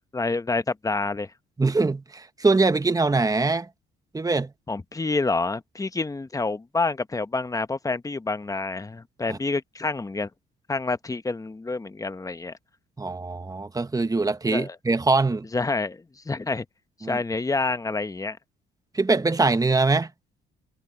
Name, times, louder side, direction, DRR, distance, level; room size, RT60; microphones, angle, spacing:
voice 1, 0.1-1.3 4.7-10.3 10.7-12.6 14.5-14.8 15.5-16.6 17.1-18.4, left 3 dB, 15° left, 1.0 m, -28 dB
voice 2, 1.6-3.7 4.1-4.5 9.3-9.4 13.0-15.4 17.0-17.2 18.9-20.1, right 3 dB, 20° right, 1.2 m, -23 dB
cardioid pair, 90°, 20 cm